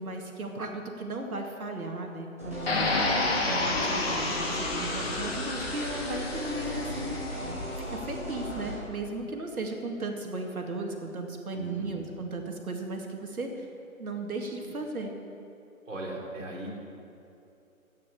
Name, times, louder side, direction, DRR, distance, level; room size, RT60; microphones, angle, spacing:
voice 1, 0.0-3.2 3.5-7.2 7.8-13.7 14.0-15.1, right 2 dB, 80° right, 2 dB, 2.3 m, -36 dB
sound 1, 2.4-8.8, equal, 10° right, 0.9 m, -36 dB
sound 2, 2.7-7.7, left 2 dB, 45° left, 2.0 m, -30 dB
voice 2, 11.5-11.9 15.9-16.8, right 1 dB, 60° right, -3 dB, 3.4 m, -38 dB
12.5 x 9.4 x 6.8 m, 2.7 s
hypercardioid pair, 175°, 42 cm